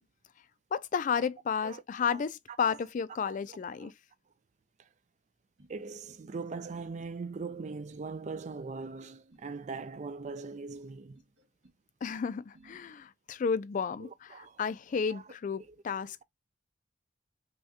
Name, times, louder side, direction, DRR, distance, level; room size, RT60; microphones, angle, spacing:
voice 1, 0.7-3.9 12.0-16.2, left 6 dB, 45° left, 0.3 m, -32 dB
voice 2, 1.6-2.2 2.5-2.8 3.2-3.9 5.7-11.2 14.0-14.6 15.1-15.2 15.7-15.8, right 4 dB, 40° right, 0.4 m, -41 dB
sound 1, 5.6-6.2 6.5-7.1 7.5-8.1 8.3-9.0 9.3-9.9 10.2-10.9 11.1-11.8 12.1-12.8, right 1 dB, 70° right, 2.0 m, -61 dB
5.5 x 2.3 x 2.8 m
head